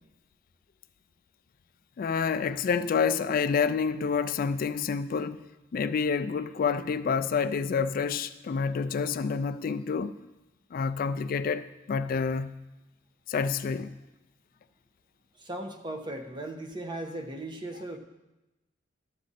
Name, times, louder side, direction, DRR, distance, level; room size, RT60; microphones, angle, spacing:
voice 1, 2.0-5.5 5.7-10.1 10.7-12.6 13.3-13.9, left 5 dB, 50° left, 0.3 m, -28 dB
voice 2, 15.4-18.0, right 1 dB, 25° right, 0.9 m, -37 dB
12.5 x 7.4 x 4.1 m
head